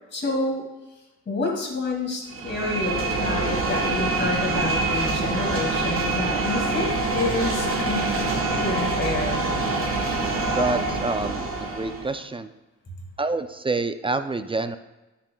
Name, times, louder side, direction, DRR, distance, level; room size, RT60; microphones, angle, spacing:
voice 1, 0.1-0.6 1.3-9.4, left 2 dB, 35° left, -1 dB, 2.4 m, -28 dB
sound 1, 2.3-12.1, right 3 dB, 45° right, 1.7 m, -25 dB
voice 2, 10.6-12.5 13.2-14.8, right 3 dB, 20° right, 10 dB, 0.4 m, -27 dB
9.4 x 8.4 x 2.3 m, 1.1 s
cardioid pair, 90°, 30 cm